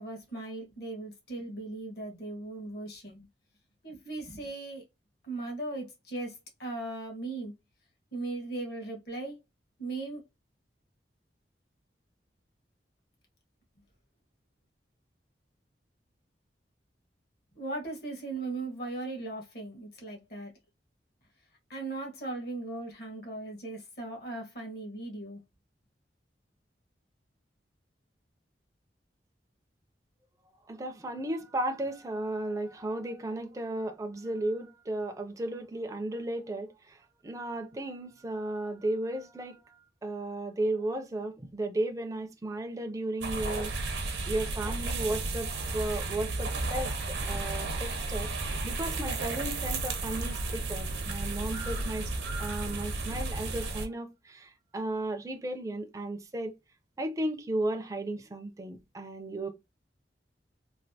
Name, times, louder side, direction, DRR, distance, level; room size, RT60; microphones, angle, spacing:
voice 1, 0.0-3.2 3.8-4.8 5.2-6.3 6.6-7.5 8.1-9.4 9.8-10.2 17.6-20.5 21.7-25.4, right 2 dB, 60° left, 1.3 m, -38 dB
voice 2, 30.7-37.0 37.2-39.6 40.0-43.7 44.3-48.3 48.6-52.0 52.4-56.5 57.0-59.5, right 1 dB, 20° right, 0.4 m, -34 dB
sound 1, 43.2-53.9, right 3 dB, 90° right, 0.8 m, -33 dB
3.2 x 2.4 x 2.6 m
head